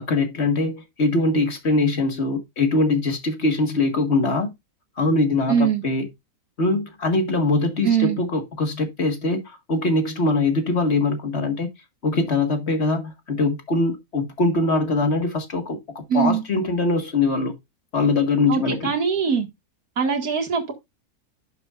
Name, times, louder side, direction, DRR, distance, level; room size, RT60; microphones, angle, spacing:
voice 1, 0.0-4.5 5.0-6.1 6.6-11.7 12.0-17.5 17.9-18.9, left 3 dB, 45° left, 1.9 m, -22 dB
voice 2, 5.5-5.8 7.8-8.2 16.1-16.4 18.5-19.5 20.0-20.7, right 7 dB, 65° right, 2.3 m, -21 dB
11.5 x 7.0 x 2.5 m
omnidirectional pair, 1.7 m